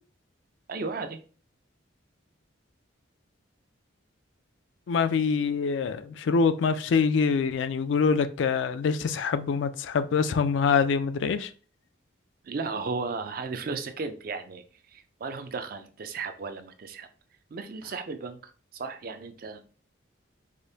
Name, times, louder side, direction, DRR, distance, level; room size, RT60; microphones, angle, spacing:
voice 1, 0.7-1.2 12.4-17.1 17.5-19.7, right 4 dB, 45° right, 0.4 m, -35 dB
voice 2, 4.9-11.5, left 5 dB, 65° left, 0.3 m, -25 dB
4.9 x 2.1 x 2.7 m
head